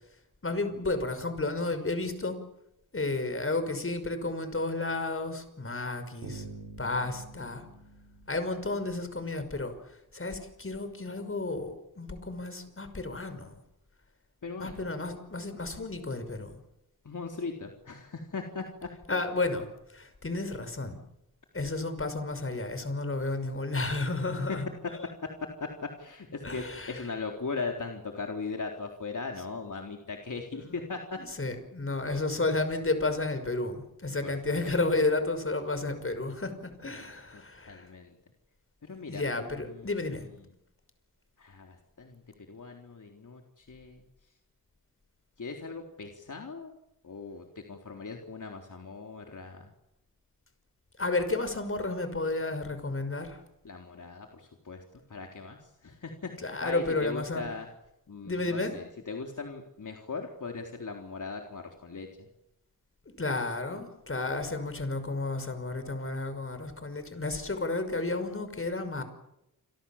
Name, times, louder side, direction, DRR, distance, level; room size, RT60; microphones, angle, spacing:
voice 1, 0.4-2.4 2.9-6.5 6.8-7.6 8.3-9.7 10.1-13.6 14.6-16.6 19.1-21.0 21.5-24.7 26.4-27.1 30.5-30.6 31.2-37.9 39.0-40.3 51.0-53.4 56.4-57.4 58.2-58.7 63.2-69.0, left 2 dB, 35° left, 9 dB, 5.8 m, -32 dB
sound 1, 6.2-9.2, right 3 dB, 80° right, 5.6 m, -47 dB
voice 2, 14.4-14.8 17.0-18.9 24.5-24.6 25.6-25.7 26.0-31.2 34.2-34.3 34.6-34.7 37.3-38.1 38.8-39.9 41.4-42.2 42.5-44.0 45.4-46.7 47.0-49.7 53.6-57.7 58.1-62.3, left 4 dB, 55° left, 2 dB, 3.8 m, -39 dB
29.0 x 24.0 x 7.4 m, 0.86 s
cardioid pair, 75°, 37 cm